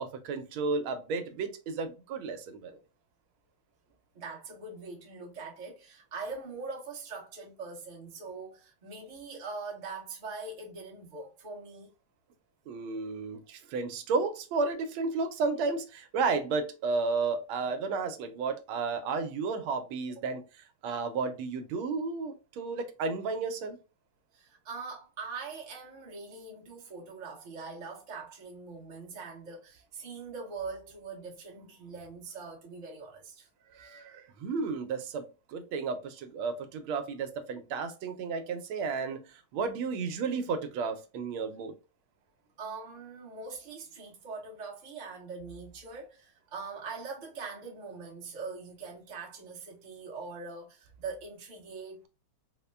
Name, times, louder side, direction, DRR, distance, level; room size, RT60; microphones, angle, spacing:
voice 1, 0.0-2.8 12.7-23.8 33.7-41.7, right 4 dB, 80° right, 1.5 m, -33 dB
voice 2, 4.1-11.9 24.3-33.5 42.6-52.1, right 4 dB, 30° right, 0.8 m, -42 dB
4.1 x 2.1 x 3.3 m
omnidirectional pair, 2.3 m